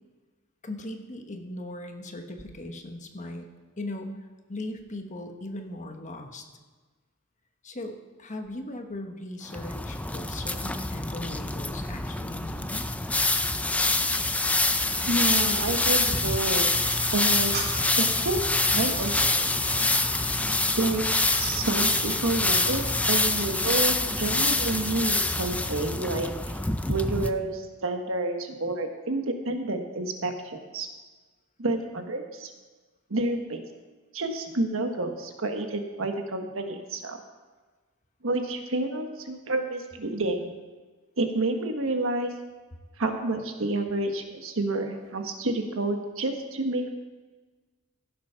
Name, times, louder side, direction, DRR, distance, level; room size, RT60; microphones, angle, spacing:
voice 1, 0.6-3.5 3.8-4.2 4.5-6.4 7.6-12.9, left 1 dB, 35° left, 4 dB, 1.3 m, -38 dB
sound 1, 9.5-27.3, left 2 dB, 5° left, 0.5 m, -26 dB
sound 2, 13.8-23.2, right 1 dB, 50° right, 2.9 m, -40 dB
voice 2, 15.1-17.7 18.0-19.8 20.7-21.0 21.4-26.6 26.9-30.9 31.6-32.5 33.1-33.6 34.1-37.2 38.2-40.6 41.2-42.3 43.0-46.9, right 2 dB, 70° right, 5 dB, 1.4 m, -29 dB
15.5 x 7.5 x 5.7 m, 1.4 s
head